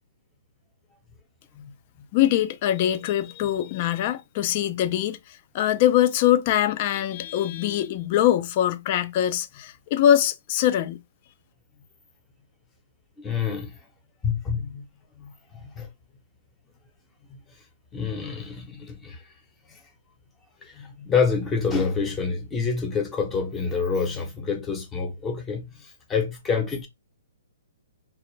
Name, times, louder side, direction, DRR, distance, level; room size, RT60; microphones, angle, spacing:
voice 1, 2.1-11.0, left 11 dB, 40° left, 0.4 m, -23 dB
voice 2, 13.2-13.7 14.2-14.8 15.2-15.9 17.3-17.4 17.9-19.2 20.6-26.9, left 5 dB, 15° left, 0.7 m, -27 dB
2.3 x 2.1 x 3.2 m
hypercardioid pair, 145°, 0 cm